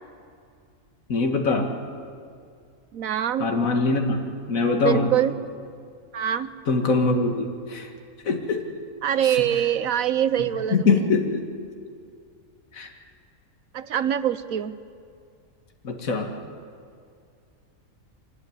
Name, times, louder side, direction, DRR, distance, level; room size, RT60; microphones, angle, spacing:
voice 1, 1.1-1.7 3.4-5.1 6.7-7.9 8.2-8.6 9.2-9.4 10.7-11.4 12.7-12.9 15.8-16.3, left 3 dB, 70° left, 3 dB, 2.3 m, -23 dB
voice 2, 2.9-3.5 4.8-5.3 6.1-6.5 9.0-10.9 13.7-14.8, right 10 dB, 75° right, 13 dB, 1.2 m, -24 dB
25.0 x 19.5 x 9.8 m, 2.3 s
omnidirectional pair, 1.5 m